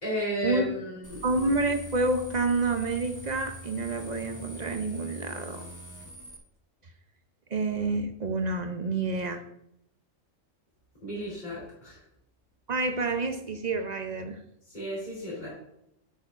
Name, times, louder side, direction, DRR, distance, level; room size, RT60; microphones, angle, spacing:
voice 1, 0.0-1.2 11.0-12.0 14.7-15.5, equal, 35° left, -6 dB, 3.5 m, -33 dB
sound 1, 1.0-6.4, left 1 dB, 15° left, 1.0 m, -43 dB
voice 2, 1.2-5.7 7.5-9.4 12.7-14.4, right 3 dB, 45° right, 7 dB, 0.6 m, -28 dB
9.4 x 8.2 x 2.5 m, 0.79 s
omnidirectional pair, 1.3 m